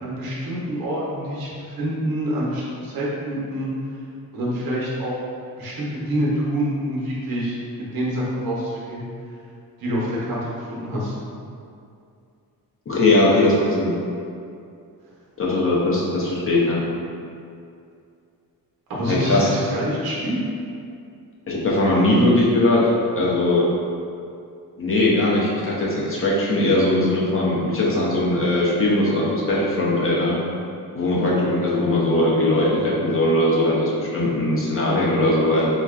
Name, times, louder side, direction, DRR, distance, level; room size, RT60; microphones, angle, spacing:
voice 1, 0.0-3.7 4.3-5.2 5.5-9.0 9.8-11.1 18.9-20.4, equal, 70° right, -6 dB, 0.8 m, -26 dB
voice 2, 12.9-13.9 15.4-16.8 19.1-19.5 21.5-22.9 23.2-23.6 24.8-30.4 30.9-35.7, left 1 dB, 35° left, -6 dB, 0.7 m, -20 dB
3.9 x 2.1 x 2.4 m, 2.4 s
cardioid pair, 100°, 37 cm